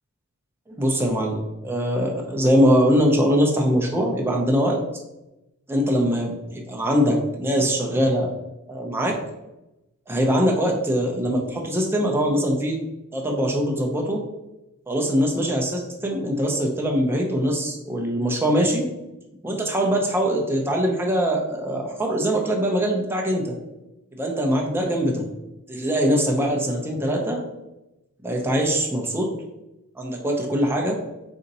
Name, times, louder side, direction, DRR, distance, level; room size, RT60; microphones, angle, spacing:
voice 1, 0.7-4.8 5.7-8.3 8.7-9.2 10.1-12.8 13.1-14.2 14.9-18.9 19.4-23.6 24.1-25.2 25.7-27.4 28.2-29.3 30.0-31.0, equal, 10° right, 0 dB, 0.6 m, -22 dB
4.2 x 2.7 x 4.0 m, 0.95 s
head